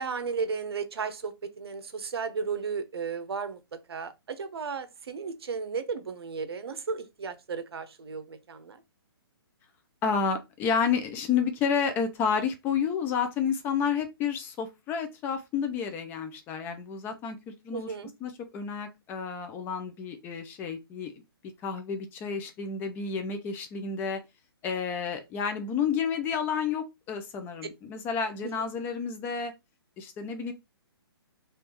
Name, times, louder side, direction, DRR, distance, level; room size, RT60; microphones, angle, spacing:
voice 1, 0.0-3.6 3.9-8.8 17.7-18.1 28.6-28.7, right 5 dB, 75° right, 0.8 m, -34 dB
voice 2, 10.0-17.4 17.6-17.9 18.2-21.2 21.6-24.2 24.6-29.5 30.0-30.5, left 6 dB, 15° left, 0.4 m, -30 dB
3.5 x 3.0 x 2.9 m
hypercardioid pair, 150°, 13 cm